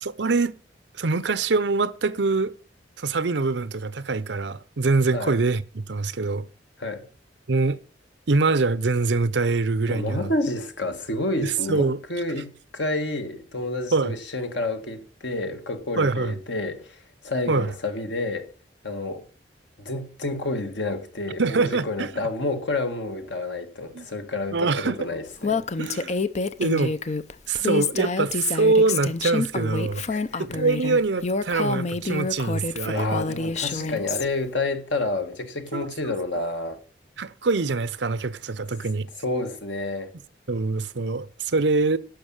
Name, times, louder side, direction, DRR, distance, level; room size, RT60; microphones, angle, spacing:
voice 1, 0.0-0.6 1.0-2.5 3.0-6.5 7.5-7.8 8.3-10.3 11.4-12.0 13.9-14.2 16.0-16.3 17.5-17.7 21.4-22.1 23.9-24.1 24.5-25.0 25.8-26.1 26.6-27.0 27.5-30.0 30.4-33.2 33.8-33.9 35.7-36.1 37.2-39.1 40.5-42.0, right 3 dB, 70° right, 0.7 m, -24 dB
voice 2, 9.9-18.5 18.8-19.3 19.8-25.6 30.1-30.6 32.8-36.8 39.2-40.1, left 2 dB, 75° left, 1.9 m, -29 dB
Female speech woman speaking, 25.4-34.2, left 4 dB, 40° left, 0.7 m, -27 dB
11.5 x 5.5 x 8.9 m
head